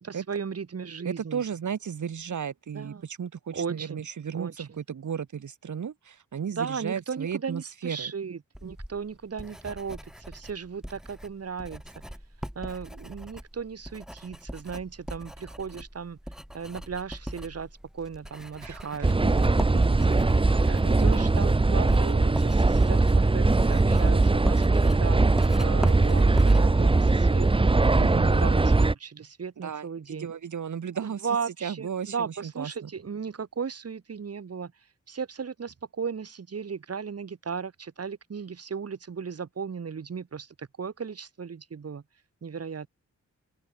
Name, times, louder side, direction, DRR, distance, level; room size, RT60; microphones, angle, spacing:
voice 1, 0.0-1.4 2.7-3.0 3.5-4.1 4.3-4.8 6.5-11.8 12.6-16.2 16.5-19.3 20.0-30.3 30.9-42.0 42.4-42.9, right 6 dB, 55° right, 3.9 m, -36 dB
voice 2, 1.0-8.1 18.6-19.4 19.7-20.0 21.0-21.2 28.0-28.5 29.6-31.3 31.6-32.9, right 7 dB, 85° right, 3.1 m, -34 dB
Writing, 8.5-28.1, equal, ahead, 1.3 m, -40 dB
sound 1, 19.0-28.9, right 3 dB, 20° right, 1.1 m, -21 dB
sound 2, 20.4-27.0, left 2 dB, 15° left, 7.0 m, -51 dB
open air
wide cardioid pair, 170°, 29 cm